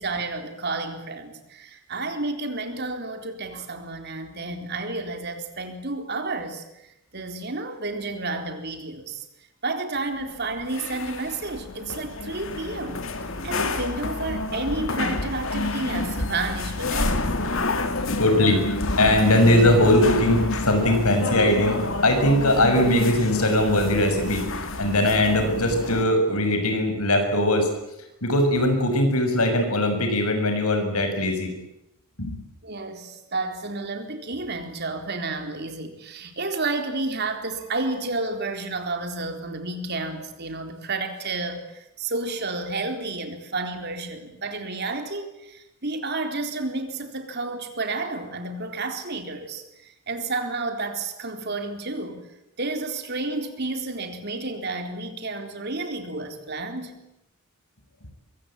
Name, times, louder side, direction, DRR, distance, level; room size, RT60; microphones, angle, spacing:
voice 1, 0.0-9.2 9.6-13.1 13.4-17.2 32.6-52.3 52.6-57.0, right 3 dB, 50° right, 6 dB, 4.0 m, -31 dB
sound 1, 10.2-26.0, left 2 dB, 60° left, 2.5 m, -29 dB
voice 2, 17.9-24.5 24.8-27.7 28.2-31.5 32.2-32.4, left 1 dB, 90° left, 6 dB, 6.6 m, -20 dB
24.5 x 23.0 x 9.0 m, 0.86 s
head